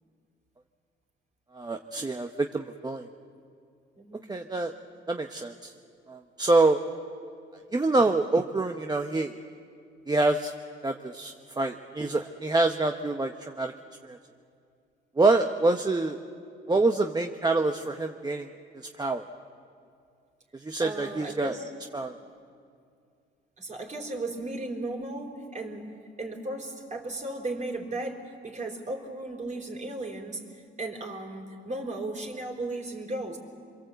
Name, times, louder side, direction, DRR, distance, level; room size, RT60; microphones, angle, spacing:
voice 1, 1.5-3.1 4.3-4.7 5.1-5.7 6.1-6.8 7.7-9.3 10.1-10.5 10.8-13.7 14.1-14.2 15.2-16.2 16.7-18.5 19.0-19.3 20.5-21.5 21.9-22.1, right 2 dB, 20° right, 4 dB, 1.0 m, -26 dB
voice 2, 4.0-4.3 20.8-21.7 23.6-30.4 30.8-33.4, right 2 dB, 35° right, 1 dB, 4.3 m, -35 dB
26.0 x 22.5 x 8.1 m, 2.3 s
cardioid pair, 90°, 20 cm